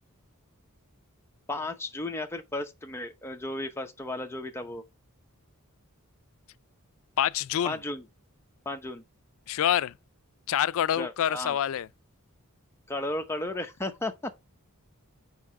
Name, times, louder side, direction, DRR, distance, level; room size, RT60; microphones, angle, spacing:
voice 1, 1.5-4.8 7.6-8.0 8.7-9.0 11.0-11.6 12.9-14.3, left 2 dB, 10° left, 0.8 m, -34 dB
voice 2, 7.2-7.8 9.5-9.9 10.5-11.9, left 10 dB, 65° left, 0.3 m, -26 dB
4.7 x 4.7 x 5.9 m
head